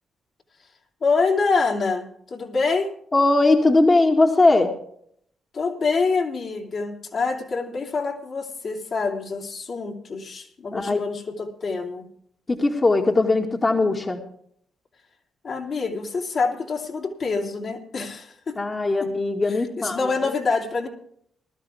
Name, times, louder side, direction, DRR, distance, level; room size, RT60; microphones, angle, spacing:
voice 1, 1.0-2.9 5.5-12.1 15.4-18.6 19.0-19.1 19.5-20.9, left 4 dB, 55° left, 0 dB, 3.2 m, -26 dB
voice 2, 3.1-4.7 10.7-11.1 12.5-14.2 18.6-20.1, left 2 dB, 35° left, 3 dB, 2.1 m, -20 dB
20.0 x 13.0 x 3.6 m, 0.67 s
hypercardioid pair, 40°, 0 cm